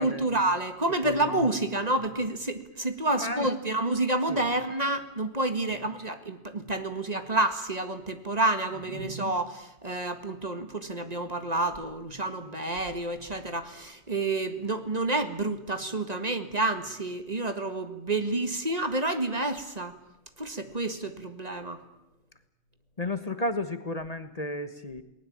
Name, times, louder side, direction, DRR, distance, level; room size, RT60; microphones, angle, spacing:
voice 1, 0.0-20.0 20.4-21.8, right 2 dB, 35° right, 8 dB, 1.9 m, -29 dB
voice 2, 1.0-1.4 3.2-3.5 4.3-4.4 9.0-9.1 23.0-25.0, left 2 dB, 35° left, 10 dB, 1.4 m, -33 dB
29.0 x 19.5 x 8.7 m, 0.89 s
omnidirectional pair, 1.1 m